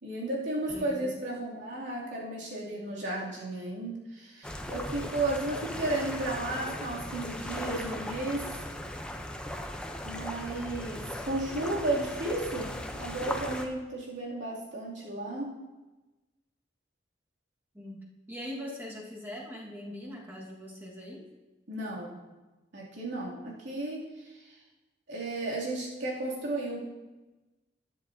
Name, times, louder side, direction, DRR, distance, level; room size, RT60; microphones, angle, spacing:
voice 1, 0.0-8.5 10.0-12.7 13.0-15.5 21.7-22.2 22.7-24.5 25.1-26.8, right 2 dB, 80° right, -5 dB, 2.7 m, -34 dB
voice 2, 0.6-1.1 17.7-21.3, left 1 dB, 10° right, -3 dB, 1.6 m, -42 dB
sound 1, 4.4-13.7, left 1 dB, 5° left, 0.6 m, -38 dB
12.0 x 10.0 x 2.7 m, 1.1 s
head